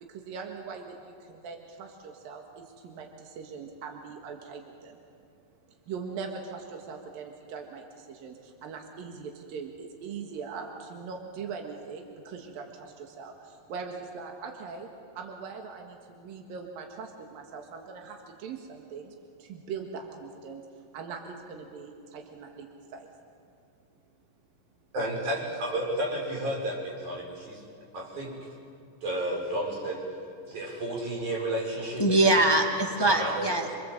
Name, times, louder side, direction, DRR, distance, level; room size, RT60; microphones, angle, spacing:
voice 1, 0.1-5.0 5.7-14.9 15.1-23.1, right 5 dB, 80° right, 2 dB, 3.5 m, -41 dB
voice 2, 24.9-27.6 27.9-28.3 29.0-30.0 30.5-32.4 33.0-33.5, right 1 dB, 55° right, -2 dB, 7.3 m, -32 dB
voice 3, 32.0-33.8, right 2 dB, 20° left, 2 dB, 0.6 m, -23 dB
27.5 x 23.5 x 8.0 m, 2.4 s
omnidirectional pair, 4.1 m